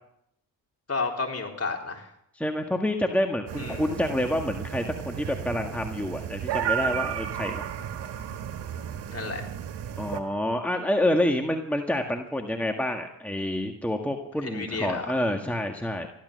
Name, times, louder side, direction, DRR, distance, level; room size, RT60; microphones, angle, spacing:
voice 1, 0.9-2.1 3.6-3.9 9.1-9.4 14.4-15.1, left 4 dB, 35° left, 1 dB, 3.7 m, -31 dB
voice 2, 2.4-7.7 10.0-16.1, left 1 dB, 5° left, 3 dB, 1.8 m, -28 dB
sound 1, 3.5-10.2, right 9 dB, 80° right, 1.6 m, -33 dB
15.0 x 12.0 x 6.6 m, 0.76 s
supercardioid pair, 55°, 41 cm